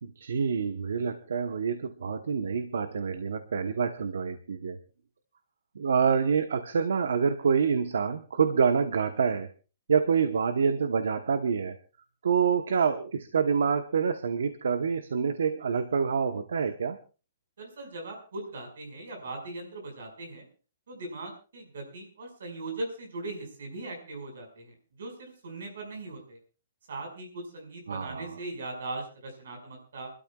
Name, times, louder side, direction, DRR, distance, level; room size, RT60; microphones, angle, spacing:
voice 1, 0.0-4.8 5.7-9.5 9.9-11.8 12.2-17.0 27.9-28.4, right 6 dB, 70° right, 9 dB, 1.0 m, -27 dB
voice 2, 17.6-20.5 20.9-26.4 26.9-30.1, right 2 dB, 55° right, 3 dB, 5.6 m, -39 dB
29.0 x 12.5 x 2.4 m, 0.34 s
hypercardioid pair, 180°, 0 cm